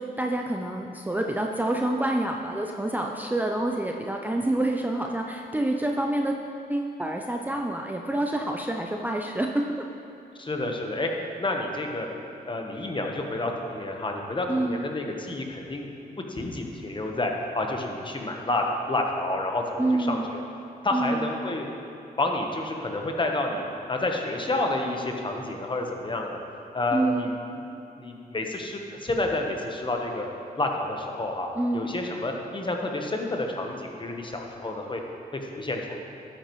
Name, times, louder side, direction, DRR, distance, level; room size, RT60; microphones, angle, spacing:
voice 1, 0.0-6.3 6.7-9.9 14.5-14.8 19.8-20.3 20.9-21.3 26.9-27.3 31.6-31.9, right 1 dB, 10° right, 1 dB, 0.6 m, -27 dB
voice 2, 10.4-11.1 11.4-12.1 12.5-15.9 16.3-20.4 20.8-21.7 22.2-26.4 26.7-27.6 28.0-30.3 30.6-35.0 35.3-35.9, left 2 dB, 30° left, 2 dB, 1.2 m, -29 dB
12.5 x 9.0 x 3.2 m, 2.7 s
cardioid pair, 80°, 17 cm